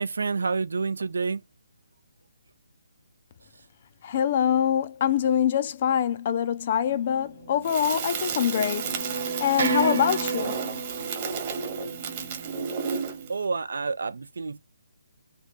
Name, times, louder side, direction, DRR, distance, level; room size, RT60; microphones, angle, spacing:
voice 1, 0.0-1.4 13.3-14.6, right 4 dB, 75° right, 0.5 m, -28 dB
voice 2, 4.0-8.9 9.4-10.5, left 9 dB, 35° left, 0.4 m, -24 dB
sound 1, 7.3-13.3, right 4 dB, 55° right, 1.1 m, -33 dB
Crackle, 7.6-13.3, right 6 dB, 30° right, 1.1 m, -33 dB
3.3 x 2.7 x 3.6 m
hypercardioid pair, 160°, 0 cm